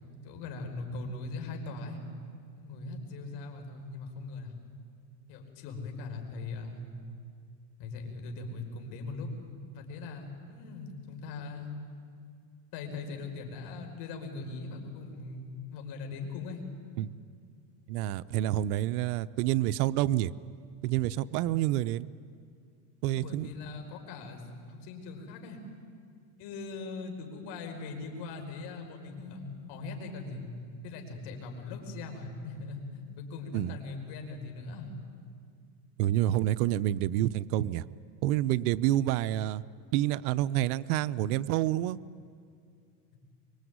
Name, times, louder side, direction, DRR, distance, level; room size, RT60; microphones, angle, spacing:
voice 1, 0.2-2.0 2.6-4.5 5.3-6.8 7.8-9.3 9.7-11.7 12.7-16.6 23.1-24.4 24.7-25.6 26.4-30.4 30.8-34.9, left 3 dB, 60° left, 3 dB, 5.3 m, -40 dB
voice 2, 17.9-20.3 20.8-22.1 23.0-23.5 33.5-33.8 36.0-37.9 38.2-39.6 39.9-42.0, right 14 dB, 70° right, 15 dB, 0.8 m, -28 dB
25.0 x 23.5 x 9.5 m, 2.3 s
supercardioid pair, 140°, 47 cm